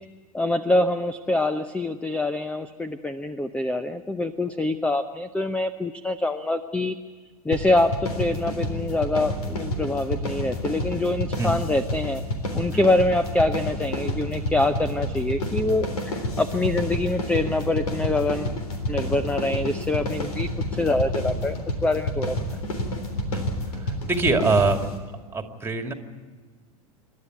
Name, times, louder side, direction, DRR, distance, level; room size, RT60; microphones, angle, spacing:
voice 1, 0.3-7.0 7.4-12.2 12.5-18.5 18.9-20.5 20.8-21.6 21.8-22.4, left 2 dB, 5° left, 12 dB, 0.7 m, -25 dB
sound 1, 7.5-25.0, left 1 dB, 75° left, 3.7 m, -29 dB
voice 2, 24.0-24.8 25.3-25.9, right 3 dB, 10° right, 5 dB, 2.4 m, -23 dB
27.5 x 12.5 x 9.3 m, 1.4 s
figure-of-eight pair, 90°, 19 cm